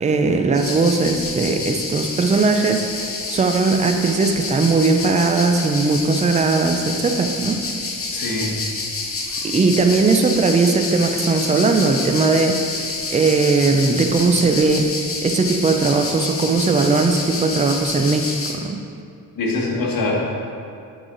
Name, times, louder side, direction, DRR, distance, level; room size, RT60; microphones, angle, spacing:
voice 1, 0.0-7.6 9.4-14.9 15.2-18.8, right 3 dB, 20° right, 5 dB, 0.5 m, -19 dB
sound 1, 0.5-18.5, left 3 dB, 40° left, 1.0 m, -28 dB
voice 2, 8.1-8.5 19.3-20.1, left 3 dB, 75° left, -3 dB, 1.5 m, -23 dB
7.7 x 4.9 x 3.9 m, 2.4 s
cardioid pair, 105°, 34 cm